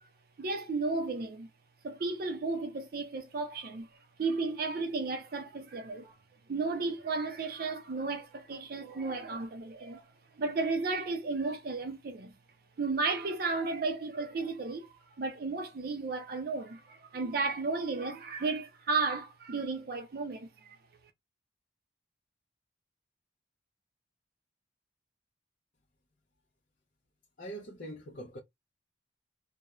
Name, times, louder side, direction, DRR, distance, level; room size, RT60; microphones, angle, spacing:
voice 1, 0.4-1.5 1.8-3.9 4.2-6.1 6.5-10.0 10.4-12.3 12.8-20.8, right 3 dB, 50° right, 0.4 m, -34 dB
voice 2, 27.4-28.4, right 1 dB, 45° left, 0.5 m, -43 dB
2.3 x 2.0 x 2.9 m
head